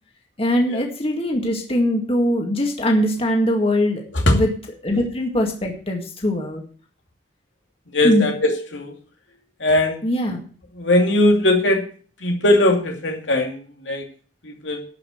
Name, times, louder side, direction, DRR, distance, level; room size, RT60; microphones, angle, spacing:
voice 1, 0.4-4.0 4.3-4.5 4.8-6.6 8.0-8.3 10.0-10.4, left 1 dB, 30° left, 2 dB, 2.0 m, -21 dB
voice 2, 7.9-8.9 9.6-10.0 10.8-11.8 12.2-14.1 14.4-14.8, left 1 dB, 90° left, 2 dB, 2.5 m, -19 dB
12.5 x 5.8 x 7.8 m, 0.43 s
head